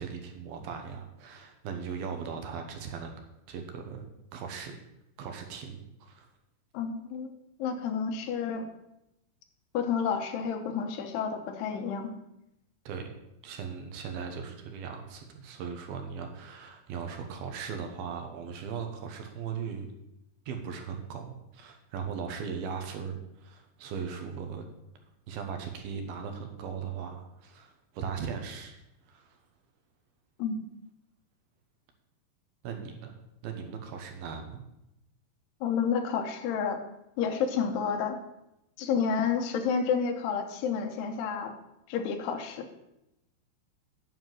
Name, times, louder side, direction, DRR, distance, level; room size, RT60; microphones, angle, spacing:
voice 1, 0.0-3.1 3.5-4.8 5.2-6.3 12.9-13.1 13.4-19.9 20.5-24.6 25.3-28.8 29.1-29.4 32.6-33.2 33.4-34.6, right 6 dB, 70° right, 5 dB, 2.7 m, -38 dB
voice 2, 6.7-7.3 7.6-8.7 9.7-12.1 30.4-30.6 35.6-36.8 37.2-38.2 38.8-41.5 41.9-42.7, left 6 dB, 85° left, 6 dB, 3.0 m, -30 dB
9.2 x 5.8 x 7.5 m, 0.87 s
omnidirectional pair, 4.7 m